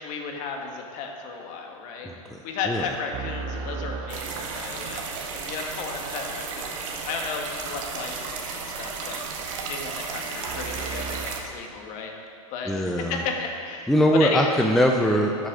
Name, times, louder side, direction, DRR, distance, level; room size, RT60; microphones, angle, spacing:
voice 1, 0.0-2.1 2.4-5.0 5.4-6.7 7.0-9.2 9.7-12.1 12.5-13.9 14.2-14.7, left 5 dB, 45° left, 2 dB, 1.7 m, -33 dB
voice 2, 2.0-2.4 2.7-2.9 12.7-13.2 13.9-15.5, equal, ahead, 1 dB, 0.6 m, -22 dB
sound 1, 3.1-6.2 10.4-11.3, right 4 dB, 40° right, 0.8 m, -36 dB
sound 2, 4.1-11.4, right 4 dB, 65° right, 1.6 m, -34 dB
12.5 x 6.6 x 5.0 m, 2.3 s
hypercardioid pair, 115°, 18 cm